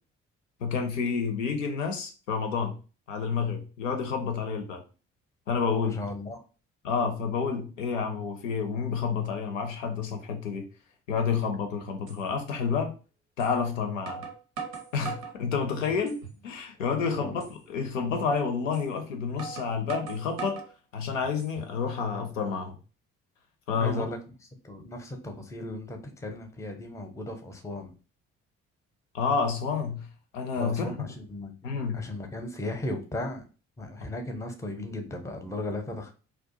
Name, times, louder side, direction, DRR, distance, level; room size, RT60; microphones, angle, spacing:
voice 1, 0.6-2.8 3.1-4.8 5.5-6.0 6.8-10.7 11.1-12.9 13.4-14.2 14.9-20.6 20.9-22.8 23.7-24.1 29.1-30.1 30.3-31.1 31.6-32.0, left 5 dB, 80° left, 0.5 m, -29 dB
voice 2, 5.8-6.4 17.2-17.4 23.8-24.2 24.6-27.9 30.6-31.5 31.9-33.5 33.8-36.1, left 1 dB, 10° left, 0.5 m, -36 dB
sound 1, 12.1-12.2 13.4-13.5 14.1-15.4 15.9-16.4 16.8-16.9 17.4-17.6 18.7-18.9 19.4-20.7 21.2-21.8, right 5 dB, 85° right, 0.6 m, -39 dB
2.4 x 2.1 x 2.8 m
figure-of-eight pair, 45°, 38 cm